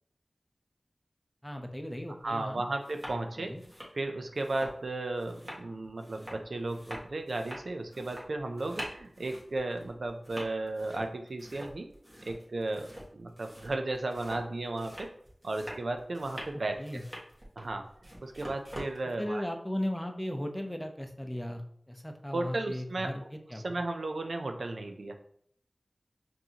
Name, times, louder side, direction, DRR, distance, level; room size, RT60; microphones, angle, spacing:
voice 1, 1.4-2.7 3.4-3.6 16.8-17.0 19.2-21.6 21.9-23.8, left 1 dB, 10° left, 4 dB, 0.6 m, -37 dB
sound 1, 2.2-2.3 2.7-3.2 3.5-19.0, equal, 20° right, 1.5 m, -46 dB
voice 2, 2.2-3.5 4.0-11.9 12.2-15.2 15.4-16.8 17.6-17.9 18.2-19.4 22.3-23.1 23.6-25.2, right 2 dB, 80° right, 5 dB, 0.5 m, -34 dB
5.3 x 2.7 x 2.8 m, 0.65 s
wide cardioid pair, 50°, 0 cm